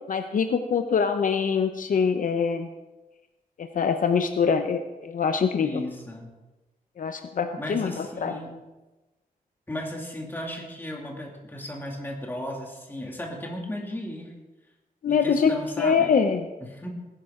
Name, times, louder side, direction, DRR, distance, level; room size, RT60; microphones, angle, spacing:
voice 1, 0.1-2.7 3.6-5.8 7.0-8.3 15.0-16.5, left 6 dB, 60° left, 7 dB, 0.7 m, -24 dB
voice 2, 5.6-6.3 7.6-8.6 9.7-14.3 15.1-16.1 16.6-16.9, left 1 dB, 15° left, -1 dB, 2.4 m, -35 dB
19.0 x 11.0 x 3.7 m, 1.1 s
wide cardioid pair, 155°, 15 cm